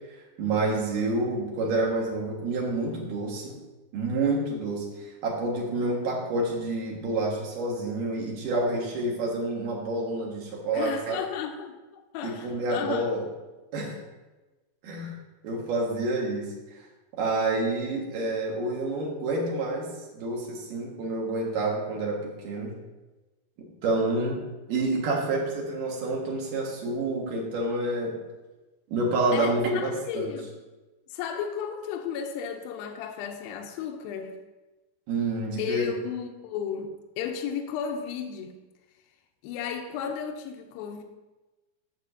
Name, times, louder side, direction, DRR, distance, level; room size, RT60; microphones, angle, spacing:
voice 1, 0.4-3.6 3.9-4.9 5.2-11.2 12.2-13.2 13.7-14.0 14.8-15.1 15.4-16.5 17.2-19.9 20.1-22.7 23.6-24.4 24.7-28.2 28.9-30.3 35.1-35.9, right 2 dB, 65° right, 3.0 m, -28 dB
voice 2, 10.7-13.1 29.3-30.5 31.1-34.4 35.6-38.5 39.4-41.0, left 7 dB, 80° left, 2.4 m, -34 dB
14.0 x 6.9 x 2.7 m
omnidirectional pair, 4.5 m